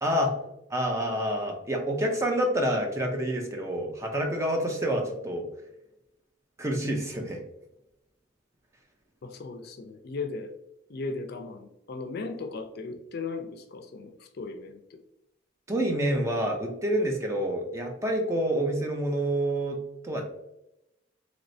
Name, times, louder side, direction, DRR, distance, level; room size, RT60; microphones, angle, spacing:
voice 1, 0.0-0.3 0.7-5.5 6.6-7.4 15.7-19.8 20.0-20.2, right 1 dB, 15° right, 2 dB, 0.5 m, -28 dB
voice 2, 9.2-10.5 10.9-15.0, left 3 dB, 55° left, 6 dB, 0.4 m, -37 dB
3.1 x 3.0 x 2.6 m, 0.85 s
head